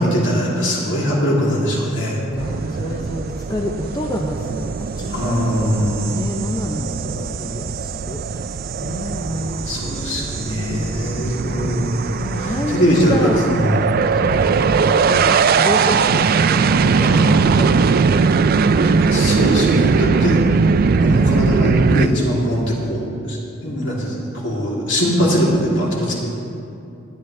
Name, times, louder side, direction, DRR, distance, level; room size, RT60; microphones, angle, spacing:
voice 1, 0.0-2.2 5.1-6.3 9.7-12.1 12.4-13.1 13.5-13.9 17.0-17.4 19.1-20.4 21.0-23.4 23.6-24.1 24.4-26.1, equal, 65° left, -4 dB, 2.9 m, -21 dB
voice 2, 2.3-5.7 6.1-8.4 8.8-11.6 12.2-13.7 14.1-18.7 19.9-20.1, left 1 dB, 20° left, 1 dB, 0.6 m, -29 dB
sound 1, 2.4-22.1, right 5 dB, 50° right, 0.4 m, -19 dB
20.5 x 9.3 x 3.3 m, 2.7 s
head